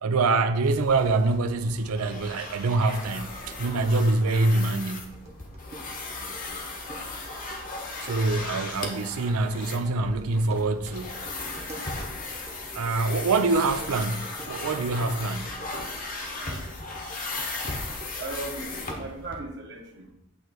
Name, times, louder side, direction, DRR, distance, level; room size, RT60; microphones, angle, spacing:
voice 1, 0.0-5.2 8.0-11.2 12.7-15.6, right 3 dB, 85° right, 0.5 m, -25 dB
sound 1, 0.6-19.4, left 3 dB, 40° left, 0.9 m, -37 dB
sound 2, 5.1-17.3 17.6-19.3, right 2 dB, 30° right, 1.0 m, -48 dB
voice 2, 6.2-6.6 16.3-16.6 18.2-20.1, right 2 dB, 50° right, 1.2 m, -38 dB
8.6 x 3.1 x 4.6 m
head